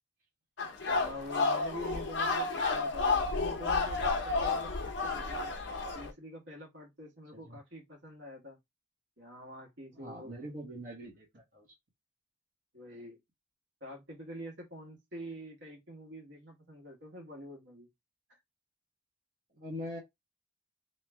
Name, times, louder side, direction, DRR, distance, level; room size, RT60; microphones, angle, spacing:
sound 1, 0.6-6.1, left 3 dB, 65° left, 0.8 m, -31 dB
voice 1, 0.9-5.5 5.9-8.6 9.2-10.3 12.7-13.2 13.8-17.9 18.3-18.4, equal, 65° right, 1.5 m, -46 dB
voice 2, 9.9-11.7 19.5-20.0, equal, 45° right, 1.2 m, -43 dB
3.2 x 3.0 x 3.4 m
head